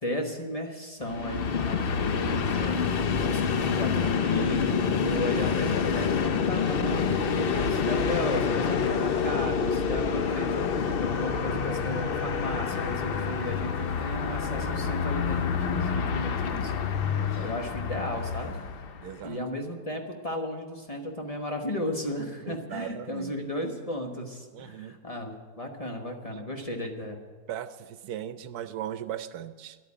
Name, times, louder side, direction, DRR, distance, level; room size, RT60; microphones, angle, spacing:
voice 1, 0.0-16.7 17.4-18.6 19.2-27.2, left 1 dB, 25° left, 2 dB, 1.2 m, -35 dB
Train, 1.0-19.2, left 6 dB, 55° left, 0.7 m, -27 dB
voice 2, 17.2-17.6 19.0-19.4 22.5-23.3 24.5-25.0 26.3-26.4 27.5-29.8, right 10 dB, 85° right, 12 dB, 1.2 m, -38 dB
11.0 x 8.7 x 8.5 m, 1.4 s
omnidirectional pair, 1.6 m